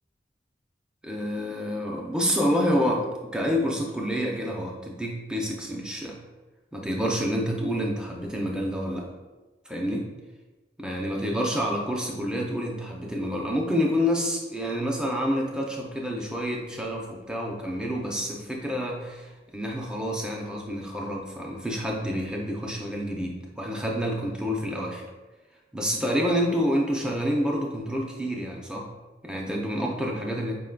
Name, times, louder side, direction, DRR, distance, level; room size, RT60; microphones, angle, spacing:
voice 1, 1.0-6.2 6.7-9.1 9.7-10.1 10.8-25.0 25.7-28.9 29.2-30.5, equal, 5° right, 0 dB, 0.5 m, -28 dB
4.9 x 3.7 x 2.2 m, 1.2 s
head